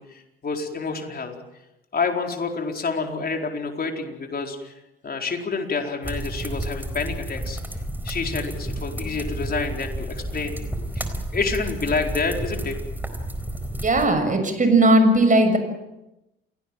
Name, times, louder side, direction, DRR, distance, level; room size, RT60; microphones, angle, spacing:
voice 1, 0.0-1.3 1.9-4.7 5.0-7.6 8.0-10.6 11.0-11.1 11.3-12.8, left 4 dB, 30° left, 3 dB, 4.5 m, -28 dB
sound 1, 6.0-14.1, right 1 dB, 5° right, 4.2 m, -31 dB
voice 2, 13.8-15.6, right 1 dB, 25° right, 7 dB, 6.8 m, -17 dB
28.5 x 18.0 x 7.7 m, 0.93 s
figure-of-eight pair, 55°, 29 cm